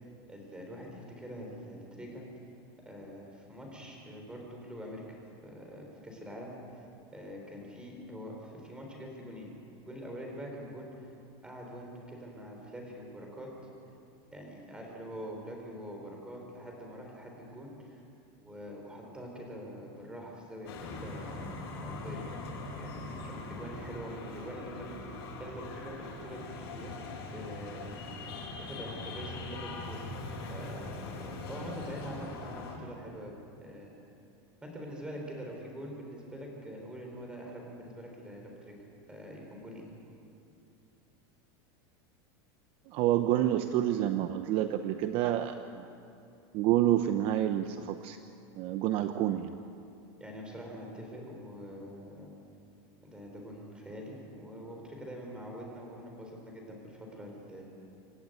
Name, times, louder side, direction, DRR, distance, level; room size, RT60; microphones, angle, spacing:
voice 1, 0.3-2.2 2.8-5.0 5.4-6.6 7.1-9.5 9.9-10.9 11.4-13.5 14.3-18.0 18.4-21.4 21.8-22.5 22.8-27.0 27.3-28.0 28.6-30.0 30.5-30.9 31.5-33.3 33.6-33.9 34.6-38.8 39.1-39.9 50.2-52.3 53.0-57.7, equal, 5° right, 0 dB, 4.3 m, -44 dB
sound 1, 20.7-32.8, left 2 dB, 85° left, 6.5 m, -41 dB
voice 2, 42.9-45.8 46.5-48.2 48.6-49.5, right 12 dB, 45° right, 9 dB, 0.8 m, -28 dB
26.5 x 11.5 x 9.2 m, 2.6 s
supercardioid pair, 150°, 13 cm